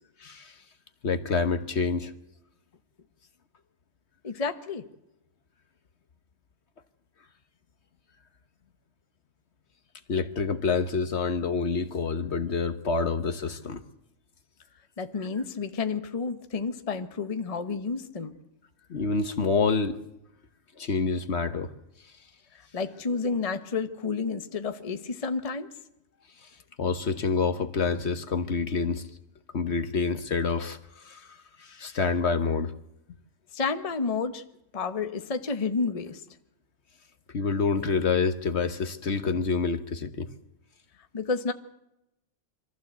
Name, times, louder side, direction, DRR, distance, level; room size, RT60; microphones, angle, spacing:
voice 1, 0.2-0.5 1.0-2.1 10.1-13.8 15.2-15.3 18.9-20.0 20.8-21.7 26.4-26.5 26.8-29.1 29.5-32.7 37.3-40.3, left 4 dB, 60° left, 1.3 m, -27 dB
voice 2, 4.2-4.9 15.0-18.4 22.7-25.7 33.5-34.4 34.7-36.2 41.1-41.5, left 4 dB, 30° left, 1.0 m, -30 dB
24.0 x 15.0 x 8.1 m
omnidirectional pair, 1.3 m